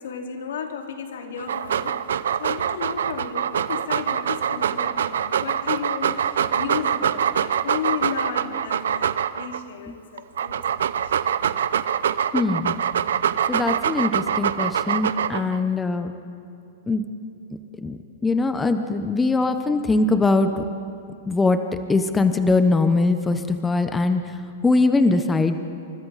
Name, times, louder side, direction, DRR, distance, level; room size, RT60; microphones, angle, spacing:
voice 1, 0.0-2.0 2.4-11.1, left 7 dB, 85° left, 3 dB, 2.7 m, -33 dB
Dog, 1.4-9.6 10.2-15.6, right 8 dB, 85° right, 0.7 m, -24 dB
voice 2, 12.3-12.7 13.5-16.1 16.9-17.0 17.8-20.6 21.3-21.6 21.9-24.2 24.6-25.6, left 3 dB, 10° left, 8 dB, 0.8 m, -21 dB
29.0 x 25.0 x 4.1 m, 2.5 s
hypercardioid pair, 155°, 0 cm